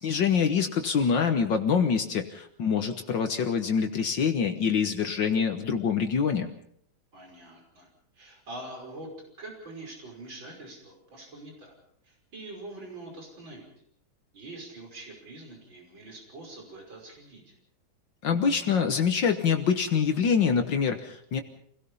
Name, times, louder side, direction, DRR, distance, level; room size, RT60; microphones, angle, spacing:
voice 1, 0.0-6.5 18.2-21.4, left 6 dB, 65° left, 6 dB, 1.8 m, -25 dB
voice 2, 7.1-7.9 8.1-9.1 9.4-11.7 12.0-13.7 14.3-17.5, right 2 dB, 65° right, 1 dB, 6.4 m, -44 dB
27.5 x 17.5 x 5.5 m, 0.66 s
omnidirectional pair, 2.2 m